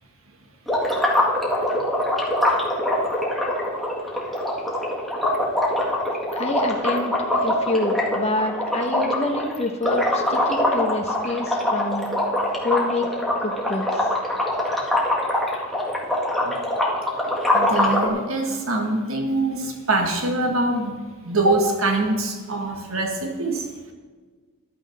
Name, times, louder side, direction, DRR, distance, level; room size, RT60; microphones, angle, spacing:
sound 1, 0.7-18.1, left 1 dB, ahead, 2.0 m, -23 dB
voice 1, 6.4-7.1 7.4-12.1 12.6-13.1 13.4-14.1, left 2 dB, 30° left, 1 dB, 1.2 m, -27 dB
voice 2, 17.5-20.9 21.3-23.6, right 2 dB, 75° right, 2 dB, 1.7 m, -23 dB
14.5 x 11.5 x 3.6 m, 1.5 s
head